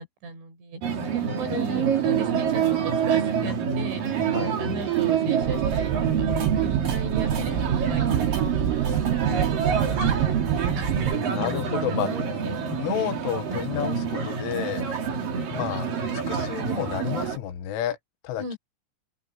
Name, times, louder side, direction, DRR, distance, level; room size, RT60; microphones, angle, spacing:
voice 1, 0.0-8.7 9.3-11.4 11.7-13.0 15.1-15.5 18.4-18.6, right 2 dB, 65° right, 9.1 m, -37 dB
sound 1, 0.8-17.4, right 7 dB, 50° right, 4.5 m, -26 dB
sound 2, 5.4-11.1, right 10 dB, 90° right, 4.3 m, -27 dB
voice 2, 11.1-12.1 12.8-14.9 15.5-15.9 16.1-18.0 18.2-18.5, left 11 dB, 75° left, 4.1 m, -30 dB
open air
omnidirectional pair, 5.7 m